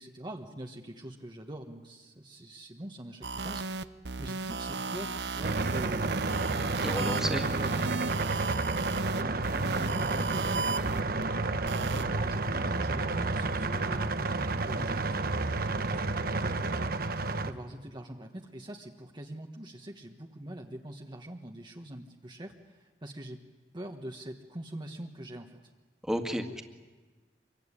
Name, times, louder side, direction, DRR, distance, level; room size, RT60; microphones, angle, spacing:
voice 1, 0.0-3.9 4.2-6.2 6.9-8.4 8.9-11.3 11.8-15.6 15.8-16.9 17.4-23.4 23.7-25.6, right 1 dB, 25° right, 2 dB, 1.4 m, -43 dB
sound 1, 3.2-11.2 11.7-12.0, right 4 dB, 75° right, 0.9 m, -35 dB
sound 2, 5.4-17.5, right 3 dB, 55° right, 1.3 m, -30 dB
voice 2, 6.8-7.5 26.0-26.6, equal, 5° right, 5 dB, 2.1 m, -32 dB
25.5 x 23.0 x 9.9 m, 1.3 s
head